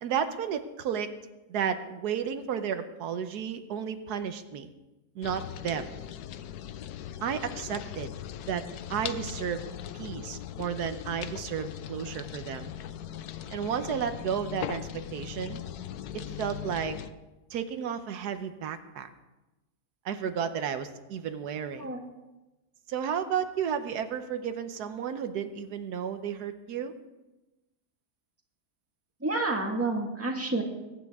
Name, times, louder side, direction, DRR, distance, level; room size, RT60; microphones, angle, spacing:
voice 1, 0.0-1.1 1.5-4.7 5.1-5.9 7.2-8.1 8.5-8.6 8.9-9.6 9.9-12.7 13.5-15.6 16.1-17.0 17.5-19.1 20.0-21.9 22.9-26.9, right 8 dB, 85° right, 9 dB, 1.3 m, -32 dB
sound 1, 5.2-17.1, left 10 dB, 85° left, 1.2 m, -39 dB
voice 2, 29.2-30.6, right 2 dB, 10° right, 1 dB, 1.5 m, -29 dB
22.0 x 9.1 x 3.6 m, 1.1 s
omnidirectional pair, 1.7 m